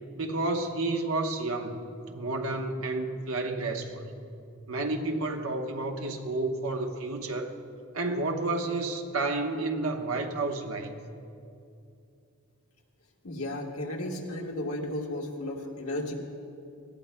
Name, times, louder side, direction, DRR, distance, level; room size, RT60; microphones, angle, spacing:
voice 1, 0.2-4.1 4.7-7.5 7.9-11.0, right 2 dB, 80° right, 4 dB, 1.0 m, -31 dB
voice 2, 13.2-16.1, left 1 dB, 80° left, -1 dB, 1.5 m, -34 dB
19.0 x 15.5 x 2.2 m, 2.5 s
head